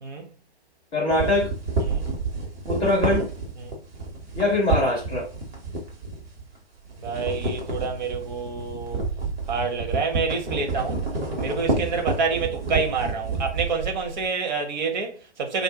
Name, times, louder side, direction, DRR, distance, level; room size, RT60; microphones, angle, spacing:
voice 1, 0.9-1.5 2.7-3.3 4.3-5.3, left 2 dB, 5° left, 0.3 m, -22 dB
sound 1, 1.1-6.6 6.8-14.3, right 3 dB, 60° right, 1.3 m, -29 dB
voice 2, 7.0-9.0 9.5-11.0 11.4-15.6, right 5 dB, 40° right, 0.9 m, -28 dB
2.6 x 2.3 x 3.5 m
figure-of-eight pair, 125°, 33 cm